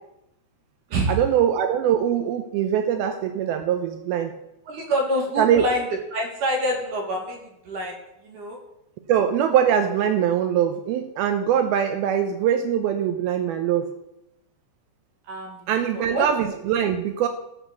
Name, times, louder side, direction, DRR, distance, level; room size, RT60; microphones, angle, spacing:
voice 1, 1.1-4.3 5.4-5.6 9.1-13.9 15.7-17.3, right 9 dB, 90° right, 7 dB, 2.1 m, -22 dB
voice 2, 4.7-5.8 6.1-7.4 7.7-7.9 8.2-8.6 15.3-15.7 15.9-16.2, equal, 50° right, 1 dB, 2.9 m, -26 dB
15.0 x 6.3 x 6.8 m, 0.85 s
omnidirectional pair, 5.3 m